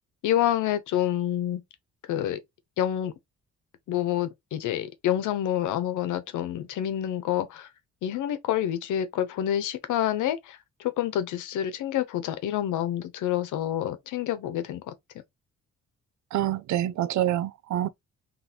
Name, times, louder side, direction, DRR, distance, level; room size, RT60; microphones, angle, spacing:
voice 1, 0.2-1.6 2.1-2.4 2.8-3.1 3.9-7.7 8.0-14.9, left 11 dB, 85° left, 0.9 m, -28 dB
voice 2, 16.3-17.9, right 12 dB, 70° right, 0.6 m, -26 dB
4.1 x 3.2 x 2.9 m
cardioid pair, 90°, 30 cm